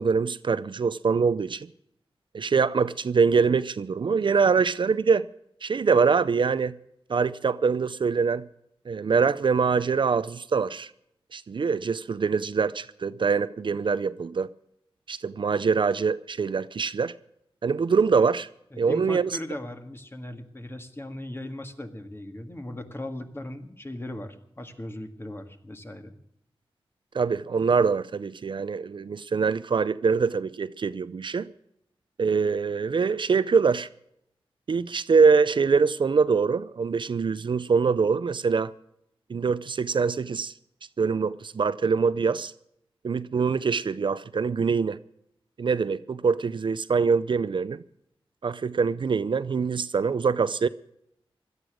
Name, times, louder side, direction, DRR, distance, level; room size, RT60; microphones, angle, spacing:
voice 1, 0.0-1.7 2.3-5.3 5.6-6.7 7.1-8.4 8.9-10.9 11.3-14.5 15.1-17.1 17.6-18.5 18.8-19.3 27.1-31.5 32.2-33.9 34.7-38.7 39.3-40.5 41.0-42.5 43.0-45.0 45.6-47.8 48.4-50.7, right 5 dB, 55° right, 0.5 m, -24 dB
voice 2, 18.7-26.1, left 1 dB, 25° left, 1.9 m, -38 dB
17.0 x 12.5 x 6.3 m
wide cardioid pair, 95°, 10 cm